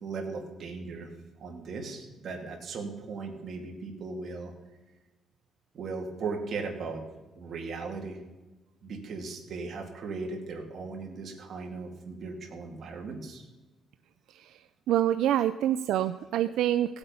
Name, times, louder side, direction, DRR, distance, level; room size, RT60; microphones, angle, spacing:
voice 1, 0.0-1.1 1.4-4.5 5.7-7.0 7.4-8.2 8.8-13.4, right 4 dB, 45° right, 1 dB, 2.4 m, -37 dB
voice 2, 14.3-14.6 14.9-17.0, right 12 dB, 80° right, 10 dB, 0.4 m, -26 dB
17.0 x 8.0 x 5.4 m, 1.1 s
cardioid pair, 155°, 0 cm